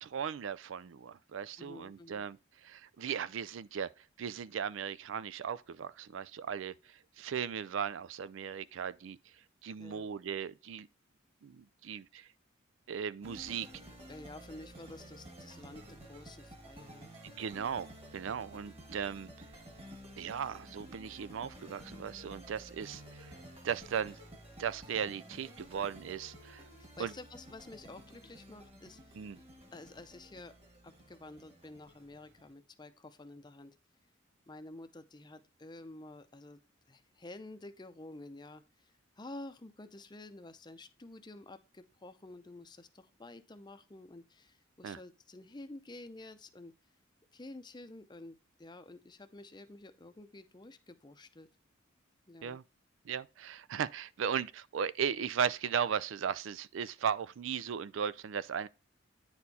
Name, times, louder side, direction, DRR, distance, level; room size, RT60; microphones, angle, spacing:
voice 1, 0.0-3.9 4.2-9.2 9.6-10.9 11.4-12.3 12.9-13.7 17.4-19.3 20.2-24.2 24.6-26.7 27.0-27.1 29.1-29.4 44.8-45.0 52.4-52.6 53.0-58.7, right 7 dB, 70° right, 0.4 m, -37 dB
voice 2, 1.6-2.3 9.8-10.1 14.1-17.1 26.8-29.2 29.7-30.6 30.8-33.7 34.5-36.6 36.9-46.7 47.3-51.5 52.3-52.6, left 2 dB, 20° left, 0.6 m, -50 dB
sound 1, 13.2-32.5, equal, 30° right, 1.9 m, -52 dB
9.6 x 4.4 x 4.1 m
head